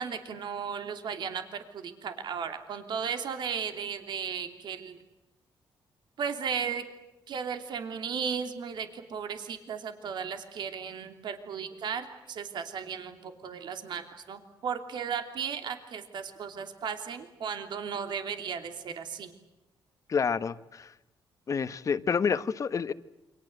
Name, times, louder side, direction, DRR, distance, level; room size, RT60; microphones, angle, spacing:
voice 1, 0.0-5.0 6.2-6.8 7.3-19.3, right 7 dB, 65° right, 3.0 m, -35 dB
voice 2, 20.1-20.9 21.5-22.9, left 6 dB, 40° left, 1.2 m, -28 dB
29.0 x 25.5 x 8.0 m
cardioid pair, 125°, 9 cm